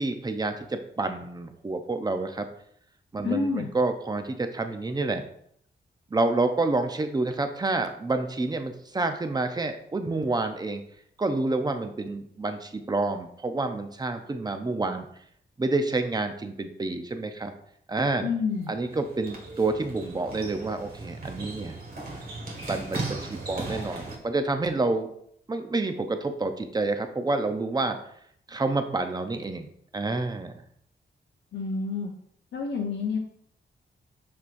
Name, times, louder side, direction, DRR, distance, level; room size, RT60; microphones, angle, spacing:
voice 1, 0.0-2.5 3.1-5.2 6.1-10.8 11.2-15.1 15.6-17.5 17.9-18.3 18.7-21.8 22.6-25.1 25.5-28.0 28.5-30.6, right 3 dB, 20° right, 7 dB, 0.6 m, -28 dB
voice 2, 3.2-3.7 18.2-18.7 31.5-32.1 32.5-33.2, left 4 dB, 80° left, 0 dB, 0.8 m, -28 dB
sound 1, 18.5-24.2, right 2 dB, 55° right, 1.8 m, -37 dB
6.2 x 5.9 x 2.6 m, 0.67 s
wide cardioid pair, 115°, 19 cm